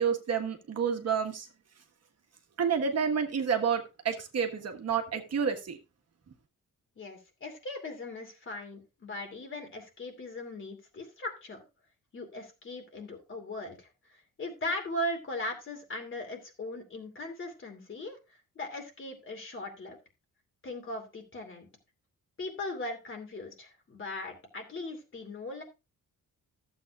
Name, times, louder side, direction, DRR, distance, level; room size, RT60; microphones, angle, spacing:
voice 1, 0.0-1.5 2.6-5.8, right 7 dB, 50° right, 4 dB, 1.5 m, -29 dB
voice 2, 7.0-11.6 12.1-18.2 18.5-20.0 20.6-21.7 22.4-25.6, left 1 dB, 35° left, 4 dB, 2.7 m, -39 dB
14.5 x 7.9 x 2.4 m, 0.27 s
wide cardioid pair, 175°, 33 cm